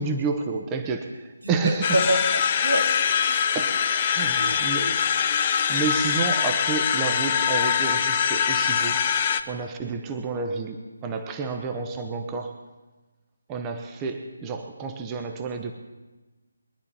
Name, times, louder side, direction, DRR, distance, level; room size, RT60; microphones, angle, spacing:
voice 1, 0.0-1.9 3.5-3.8 4.1-5.0 5.7-9.1 9.5-12.6 13.5-15.7, right 4 dB, 15° right, 5 dB, 0.9 m, -30 dB
voice 2, 1.6-3.4 4.4-5.0, equal, 80° right, 1 dB, 2.5 m, -28 dB
sound 1, 1.8-9.4, left 7 dB, 30° left, 0.7 m, -23 dB
22.5 x 11.0 x 4.2 m, 1.2 s
figure-of-eight pair, 150°, 0 cm